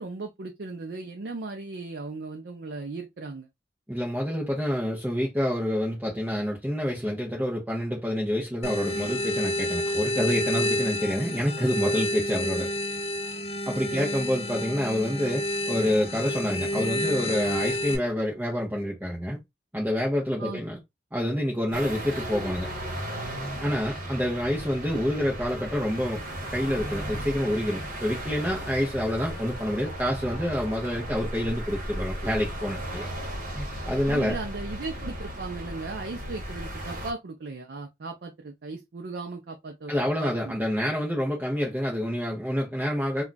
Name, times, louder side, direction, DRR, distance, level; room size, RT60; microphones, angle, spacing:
voice 1, 0.0-3.5 13.9-14.1 20.4-20.6 34.1-39.9 40.2-40.6, right 3 dB, 65° right, 0.5 m, -37 dB
voice 2, 3.9-12.7 13.7-19.4 19.7-20.8 21.1-22.7 23.6-26.2 26.5-33.1 33.6-34.4 39.9-43.2, equal, 10° right, 0.6 m, -27 dB
sound 1, 8.6-18.0, left 1 dB, 35° left, 0.5 m, -29 dB
sound 2, 21.7-37.1, right 1 dB, 45° right, 1.0 m, -35 dB
2.3 x 2.3 x 3.8 m
head